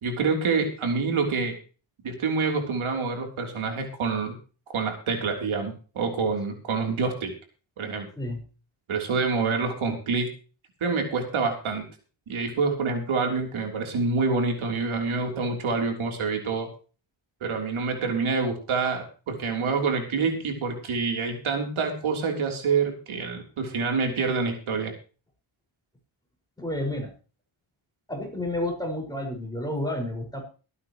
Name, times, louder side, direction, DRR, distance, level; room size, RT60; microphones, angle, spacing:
voice 1, 0.0-1.6 2.0-4.4 4.7-7.3 7.8-8.1 8.9-10.3 10.8-11.8 12.3-16.7 17.4-24.9, right 4 dB, 85° right, 3 dB, 3.6 m, -27 dB
voice 2, 26.6-27.1 28.1-30.4, left 1 dB, 10° left, 1 dB, 5.4 m, -30 dB
23.5 x 9.5 x 3.1 m, 0.36 s
wide cardioid pair, 135°, 48 cm